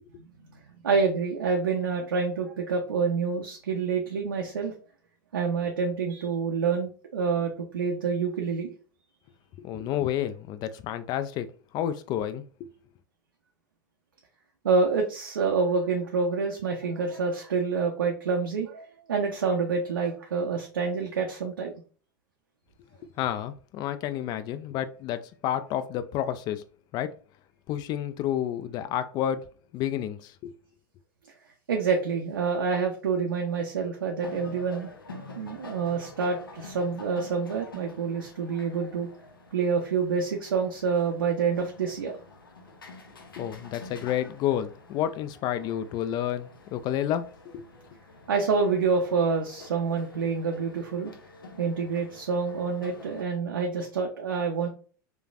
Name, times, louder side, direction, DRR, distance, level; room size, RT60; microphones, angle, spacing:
voice 1, 0.8-4.7 5.3-8.7 14.6-21.7 31.7-34.9 35.4-39.1 39.5-42.1 48.3-51.1 51.6-54.7, right 5 dB, 85° right, 0.5 m, -27 dB
voice 2, 9.6-11.5 11.7-12.7 23.2-26.6 26.9-27.1 27.7-29.4 29.7-30.5 43.4-47.6, left 11 dB, 40° left, 0.3 m, -30 dB
sound 1, 34.2-53.2, left 3 dB, 90° left, 0.6 m, -47 dB
3.1 x 2.1 x 2.4 m
hypercardioid pair, 95°, 11 cm